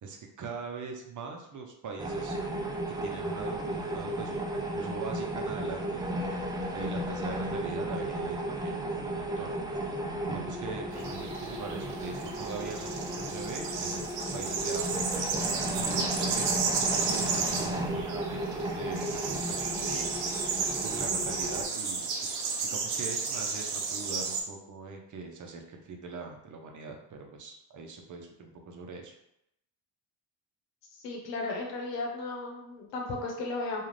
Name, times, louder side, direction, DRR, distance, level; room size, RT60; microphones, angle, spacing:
voice 1, 0.0-2.4 2.9-9.5 10.3-20.1 20.8-22.1 22.6-29.1, right 4 dB, 45° right, 2 dB, 0.7 m, -42 dB
sound 1, 2.0-21.6, right 1 dB, 10° right, 0.4 m, -34 dB
sound 2, 10.9-24.4, right 5 dB, 85° right, 0.7 m, -33 dB
voice 2, 30.9-33.9, left 2 dB, 85° left, 0 dB, 0.9 m, -35 dB
2.4 x 2.4 x 3.2 m, 0.80 s
supercardioid pair, 80°, 43 cm